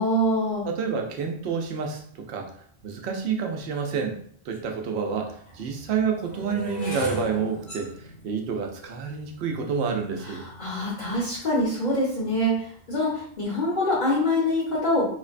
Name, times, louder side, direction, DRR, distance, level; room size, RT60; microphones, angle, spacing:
voice 1, 0.0-0.6 10.2-15.1, left 1 dB, 45° left, -7 dB, 0.9 m, -25 dB
voice 2, 0.6-2.5 2.8-4.2 4.5-10.4, right 6 dB, 90° right, 3 dB, 0.8 m, -29 dB
sound 1, 4.5-4.6 5.4-11.5 12.2-12.6 12.8-13.2, left 2 dB, 65° left, 1.1 m, -38 dB
3.1 x 2.1 x 2.4 m, 0.62 s
omnidirectional pair, 1.1 m